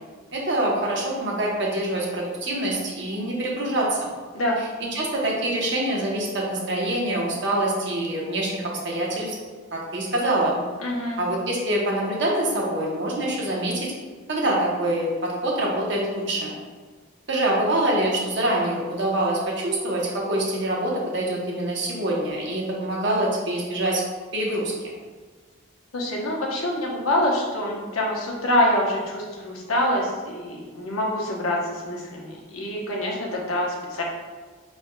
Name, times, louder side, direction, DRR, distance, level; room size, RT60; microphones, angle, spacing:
voice 1, 0.3-4.0 4.9-9.4 9.7-10.6 11.2-13.9 14.3-16.5 17.3-24.0 24.3-24.7, right 1 dB, 55° right, -3 dB, 0.9 m, -25 dB
voice 2, 10.8-11.2 25.9-34.0, left 1 dB, 85° left, -2 dB, 0.9 m, -25 dB
5.6 x 3.4 x 2.2 m, 1.5 s
head